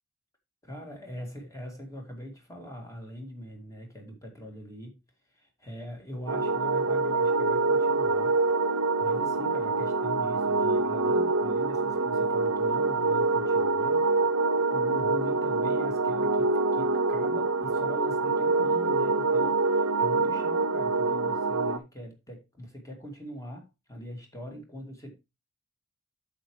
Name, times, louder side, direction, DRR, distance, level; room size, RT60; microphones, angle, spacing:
voice 1, 0.6-5.0 5.3-8.4 9.0-14.1 14.7-25.1, equal, 15° left, 2.5 m, -42 dB
sound 1, 6.3-21.8, right 3 dB, 75° right, 0.7 m, -25 dB
8.6 x 7.5 x 3.2 m
head